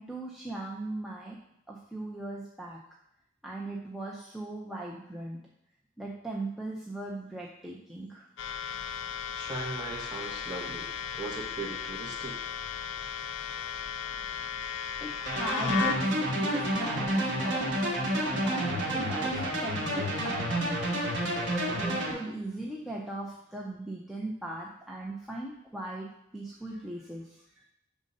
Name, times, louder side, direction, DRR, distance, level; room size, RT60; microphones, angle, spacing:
voice 1, 0.0-1.4 1.7-2.8 3.4-5.4 6.0-8.3 15.0-15.9 16.2-17.8 18.3-21.0 21.8-27.3, right 2 dB, ahead, -4 dB, 0.5 m, -39 dB
sound 1, 8.4-16.0, left 8 dB, 65° left, 0.4 m, -36 dB
voice 2, 9.3-10.9 11.1-12.4, right 3 dB, 20° right, -2 dB, 1.1 m, -38 dB
sound 2, 15.3-22.1, right 1 dB, 60° right, 1.2 m, -29 dB
5.3 x 3.7 x 5.3 m, 0.77 s
head